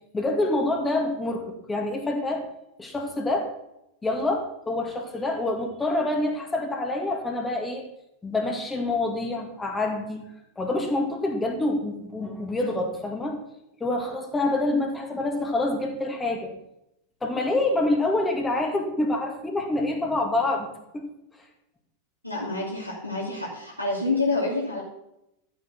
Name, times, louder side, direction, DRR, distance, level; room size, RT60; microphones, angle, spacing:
voice 1, 0.1-2.5 2.8-3.5 4.0-7.8 8.2-10.2 10.6-13.4 13.8-16.5 17.2-20.7 20.9-21.1, left 2 dB, 10° left, 2 dB, 2.3 m, -26 dB
voice 2, 22.2-24.8, left 3 dB, 90° left, -5 dB, 3.0 m, -27 dB
12.0 x 8.2 x 5.9 m, 0.84 s
figure-of-eight pair, 90°, 0 cm